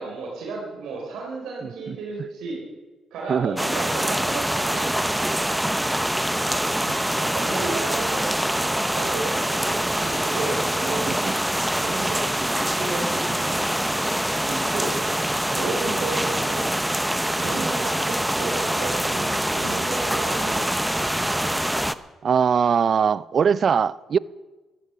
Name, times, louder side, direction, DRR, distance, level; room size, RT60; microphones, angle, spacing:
voice 1, 0.0-2.6 3.1-4.9 7.1-11.1 11.6-13.7 14.5-15.1 15.5-16.9 17.3-20.6, right 3 dB, 80° right, 3.9 m, -33 dB
voice 2, 1.6-2.0 3.3-3.6 11.1-11.3 15.9-16.0 17.5-17.7 22.2-24.2, right 7 dB, 55° right, 0.5 m, -22 dB
sound 1, 3.6-22.0, right 1 dB, 5° right, 0.8 m, -24 dB
14.0 x 13.5 x 7.0 m
supercardioid pair, 65°, 0 cm